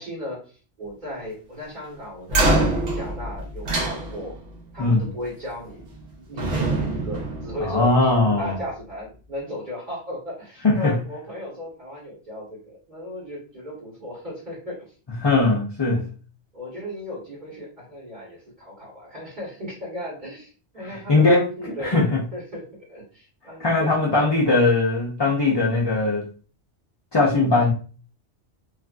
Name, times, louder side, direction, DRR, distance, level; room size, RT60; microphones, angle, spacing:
voice 1, 0.0-4.3 4.7-5.8 6.2-14.9 16.5-22.0 22.3-24.3, left 1 dB, 40° right, -6 dB, 1.4 m, -36 dB
sound 1, 2.3-4.6 5.7-6.1 6.4-8.1, right 2 dB, 75° right, 1.1 m, -25 dB
voice 2, 7.6-8.6 10.6-10.9 15.2-16.1 20.9-21.4 21.8-22.2 23.6-26.3 27.1-27.7, left 3 dB, 35° left, -4 dB, 0.4 m, -20 dB
3.3 x 2.4 x 2.4 m, 0.38 s
omnidirectional pair, 1.2 m